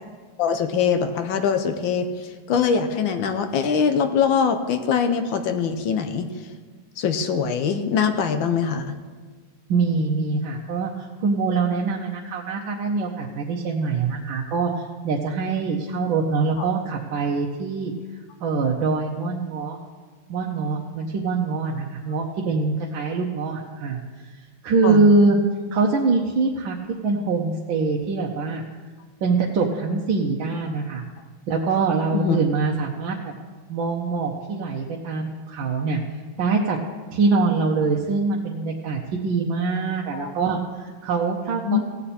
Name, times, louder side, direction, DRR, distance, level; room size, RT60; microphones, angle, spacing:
voice 1, 0.4-6.3 7.0-8.9 16.6-16.7 24.8-25.0 32.1-32.4 40.1-40.3 41.6-41.8, left 6 dB, 75° left, 7 dB, 1.5 m, -23 dB
voice 2, 9.7-17.9 18.4-19.8 20.3-24.0 24.6-25.4 25.7-26.8 27.0-28.6 29.2-31.0 31.5-33.2 33.7-36.0 36.4-36.8 37.1-41.8, right 4 dB, 75° right, -1 dB, 1.7 m, -23 dB
16.5 x 8.4 x 4.3 m, 1.5 s
omnidirectional pair, 2.2 m